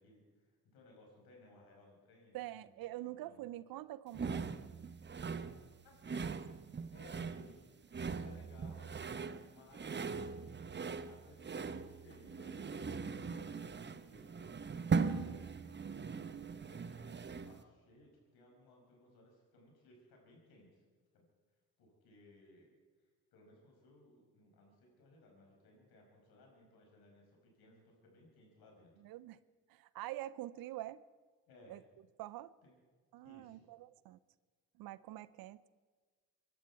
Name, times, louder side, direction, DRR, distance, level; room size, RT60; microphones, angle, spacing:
voice 1, 0.0-3.5 5.8-6.4 6.9-8.9 9.4-14.3 15.0-15.7 16.7-20.8 21.1-21.3 21.8-29.0 31.5-31.8 32.6-32.8 33.2-33.7, left 1 dB, 70° left, 0 dB, 5.4 m, -62 dB
voice 2, 2.3-4.5 6.3-6.4 29.0-29.4 29.7-31.0 31.7-31.8 32.2-32.5 33.1-34.2 34.8-35.7, right 15 dB, 65° right, 18 dB, 0.6 m, -46 dB
sound 1, 4.1-17.6, right 5 dB, 30° right, 0.9 m, -40 dB
24.0 x 11.5 x 4.7 m, 1.5 s
hypercardioid pair, 50°, 39 cm